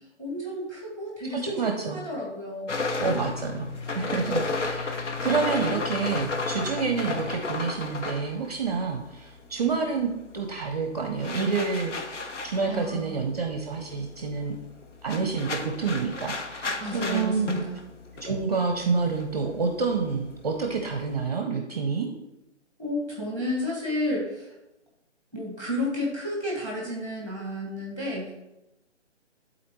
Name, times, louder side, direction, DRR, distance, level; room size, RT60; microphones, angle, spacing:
voice 1, 0.2-2.7 12.7-13.3 16.8-17.8 22.8-24.5 25.3-28.3, left 1 dB, 10° left, -3 dB, 1.4 m, -31 dB
voice 2, 1.3-2.0 3.0-11.9 12.4-14.5 15.0-17.5 18.1-22.1, right 5 dB, 35° right, 4 dB, 0.6 m, -28 dB
sound 1, 2.7-9.4 9.7-21.3, left 3 dB, 80° left, 0.9 m, -33 dB
11.5 x 4.1 x 3.0 m, 0.92 s
hypercardioid pair, 155°, 36 cm